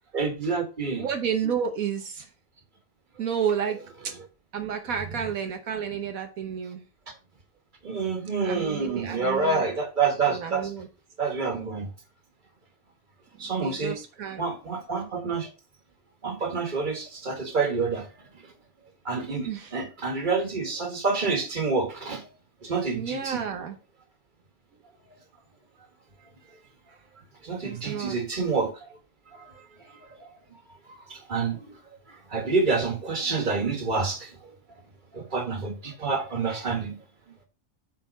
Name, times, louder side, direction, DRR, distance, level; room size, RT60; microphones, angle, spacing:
voice 1, 0.1-1.1 7.8-10.7 11.2-11.9 13.4-14.0 14.4-15.5 16.2-18.1 19.1-22.3 22.6-23.4 27.4-29.0 29.3-29.5 30.2-30.3 31.1-31.7 32.3-34.5 35.1-37.0, right 4 dB, 35° right, 1.8 m, -28 dB
voice 2, 1.0-2.3 3.2-4.1 4.5-6.8 8.4-9.6 10.3-10.9 13.4-14.5 19.5-19.7 22.9-23.8 26.9-27.0 27.6-28.2, right 7 dB, 80° right, 1.4 m, -31 dB
8.2 x 4.0 x 5.2 m
omnidirectional pair, 1.4 m